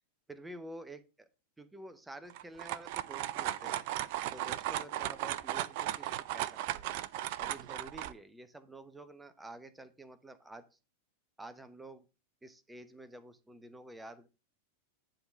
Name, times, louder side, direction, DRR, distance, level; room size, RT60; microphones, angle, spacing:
voice 1, 0.3-1.3 1.6-3.9 4.3-7.0 7.4-10.6 11.4-12.0 12.4-14.3, right 2 dB, 5° right, 12 dB, 0.9 m, -49 dB
sound 1, 2.3-8.1, right 13 dB, 50° right, 0.4 m, -36 dB
10.5 x 3.8 x 5.7 m, 0.31 s
figure-of-eight pair, 90°, 0 cm